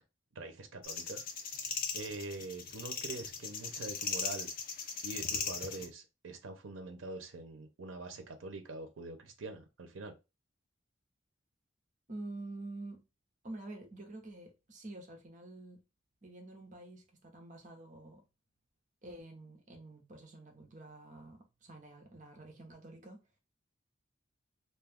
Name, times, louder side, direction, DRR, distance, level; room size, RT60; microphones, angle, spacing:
voice 1, 0.3-1.2 1.9-4.5 5.0-10.2, right 3 dB, 85° right, 0.6 m, -44 dB
sound 1, 0.8-5.9, left 5 dB, 50° left, 0.6 m, -38 dB
voice 2, 12.1-13.0 13.4-15.8 16.2-18.2 19.0-23.2, right 2 dB, 40° right, 0.8 m, -48 dB
2.6 x 2.3 x 3.4 m
head